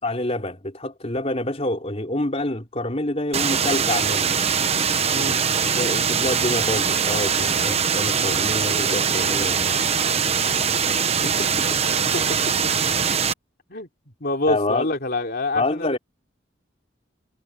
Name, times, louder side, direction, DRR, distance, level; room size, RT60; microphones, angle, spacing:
voice 1, 0.0-4.4 5.6-9.8 11.2-11.7 14.5-14.9 15.5-16.0, left 1 dB, 35° left, 3.8 m, -27 dB
sound 1, 3.3-13.3, right 6 dB, 35° right, 1.0 m, -22 dB
sound 2, 7.2-11.3, right 1 dB, 60° right, 6.5 m, -45 dB
voice 2, 11.9-12.2 13.7-13.9 14.2-15.9, left 2 dB, 55° left, 3.5 m, -26 dB
head